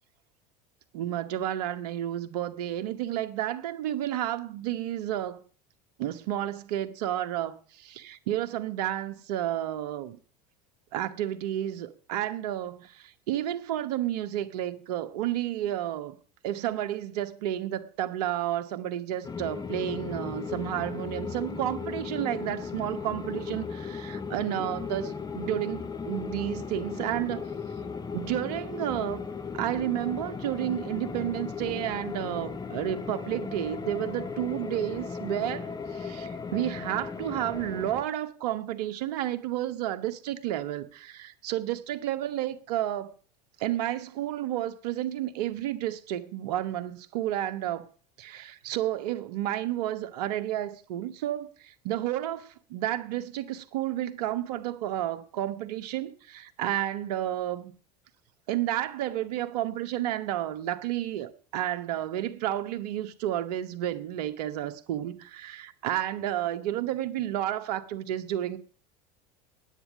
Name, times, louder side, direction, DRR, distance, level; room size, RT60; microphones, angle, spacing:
voice 1, 0.9-5.4 6.0-10.2 10.9-16.2 16.4-27.5 28.1-29.2 29.5-43.1 43.6-47.9 48.2-57.7 58.5-68.6, right 12 dB, 65° right, 1.0 m, -31 dB
sound 1, 19.2-38.0, left 5 dB, 20° left, 0.9 m, -36 dB
9.7 x 8.3 x 7.2 m
hypercardioid pair, 80°, 21 cm